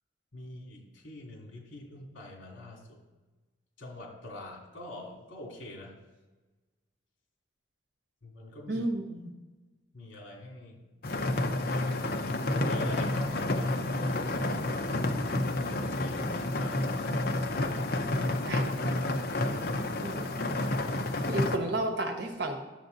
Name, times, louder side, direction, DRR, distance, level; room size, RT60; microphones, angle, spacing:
voice 1, 0.3-3.0 3.8-6.0 8.2-8.8 9.9-10.8 12.3-14.2 15.6-18.0 19.9-20.2, left 1 dB, 75° left, -1 dB, 2.6 m, -45 dB
voice 2, 8.7-9.3 18.5-18.9 20.0-20.3 21.2-22.6, right 2 dB, 60° right, 4 dB, 1.2 m, -32 dB
sound 1, 11.0-21.6, left 2 dB, 50° left, 0.7 m, -30 dB
11.0 x 7.1 x 4.0 m, 1.2 s
head